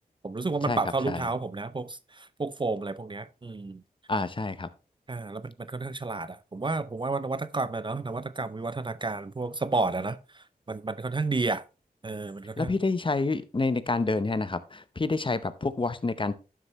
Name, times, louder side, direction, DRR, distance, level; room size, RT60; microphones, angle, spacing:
voice 1, 0.2-3.8 5.1-11.6 12.0-12.7, right 3 dB, 30° right, 0.5 m, -31 dB
voice 2, 4.1-4.7 12.6-16.3, left 3 dB, 35° left, 0.7 m, -28 dB
11.5 x 6.7 x 3.0 m
wide cardioid pair, 65°, 16 cm